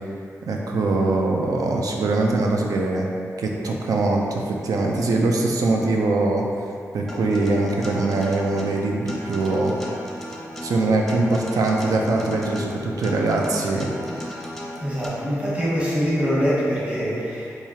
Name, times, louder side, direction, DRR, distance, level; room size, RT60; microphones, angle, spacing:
voice 1, 0.5-3.1 3.4-6.4 6.9-9.7 10.6-13.9, right 2 dB, 85° right, 0 dB, 0.4 m, -22 dB
Acoustic guitar, 7.1-15.1, equal, 5° left, 0.6 m, -36 dB
voice 2, 14.8-17.5, equal, 20° right, -9 dB, 1.1 m, -24 dB
4.4 x 2.4 x 2.8 m, 2.4 s
cardioid pair, 60°, 6 cm